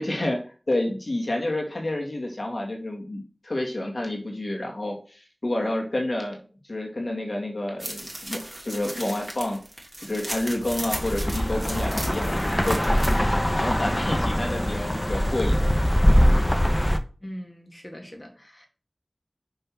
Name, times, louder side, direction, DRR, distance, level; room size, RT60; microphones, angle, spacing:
voice 1, 0.0-6.4 6.7-9.6 10.0-16.1, left 1 dB, 65° left, 2.2 m, -29 dB
sound 1, 7.8-13.2, right 1 dB, 25° right, 2.9 m, -36 dB
sound 2, 10.7-17.0, equal, 20° left, 0.9 m, -22 dB
voice 2, 17.2-18.7, equal, 35° left, 2.3 m, -41 dB
5.8 x 5.2 x 6.1 m
wide cardioid pair, 40°, 0 cm